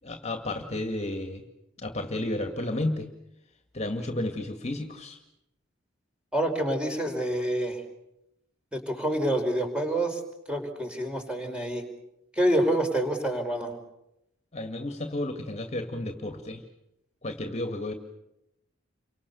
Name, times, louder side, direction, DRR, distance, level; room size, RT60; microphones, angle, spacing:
voice 1, 0.0-1.4 1.8-3.1 3.7-5.2 14.5-16.6 17.2-17.9, left 1 dB, 35° left, 6 dB, 2.1 m, -32 dB
voice 2, 6.3-7.8 8.7-10.2 10.5-11.8 12.3-13.7, right 1 dB, 5° right, 3 dB, 4.9 m, -27 dB
29.0 x 25.0 x 7.0 m, 0.85 s
head